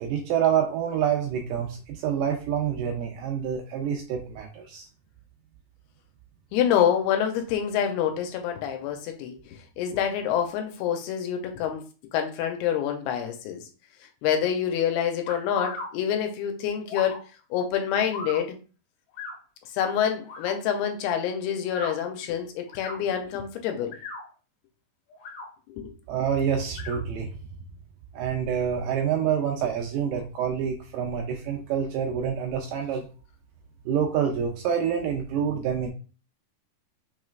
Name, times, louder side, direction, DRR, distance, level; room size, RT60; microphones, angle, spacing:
voice 1, 0.0-4.9 26.1-27.3 28.1-33.1 33.9-35.9, right 8 dB, 80° right, 2 dB, 2.0 m, -27 dB
voice 2, 6.5-9.4 9.8-11.8 12.1-13.7 14.2-17.2 17.5-18.6 19.7-24.0 25.7-25.9, left 9 dB, 90° left, 5 dB, 2.6 m, -27 dB
sound 1, 15.3-15.9 16.9-17.2 18.1-18.4 19.1-19.4 20.2-20.5 21.6-21.9 22.7-23.0 23.8-24.2 25.1-25.5 26.7-27.0, left 3 dB, 70° left, 2.7 m, -36 dB
5.8 x 3.2 x 2.4 m, 0.36 s
omnidirectional pair, 4.4 m